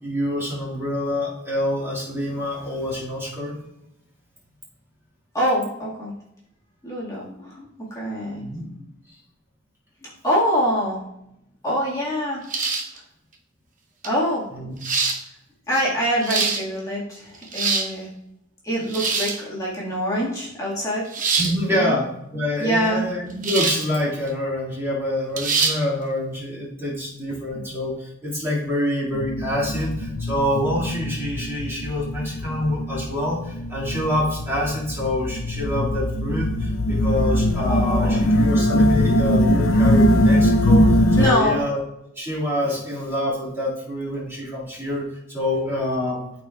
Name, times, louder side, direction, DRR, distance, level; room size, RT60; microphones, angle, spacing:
voice 1, 0.0-3.6 8.4-8.7 14.5-14.7 21.4-40.9 41.2-41.8 42.2-46.3, left 1 dB, 15° right, -6 dB, 1.9 m, -26 dB
voice 2, 5.3-6.1 6.8-7.7 7.9-8.5 8.7-8.8 10.0-11.0 11.6-12.4 14.0-14.5 15.7-18.1 18.6-21.0 21.7-22.0 22.6-23.0 37.6-38.2 41.2-41.6, equal, 15° left, -6 dB, 1.6 m, -24 dB
sound 1, 12.5-13.0 14.0-14.1 14.8-15.2 16.0-16.6 17.3-17.9 18.9-19.4 21.1-21.5 23.4-23.9 24.3-24.4 25.4-25.8, right 4 dB, 40° right, 0.8 m, -23 dB
sound 2, 29.1-41.3, equal, 80° left, 0.6 m, -21 dB
12.5 x 4.3 x 2.3 m, 0.83 s
head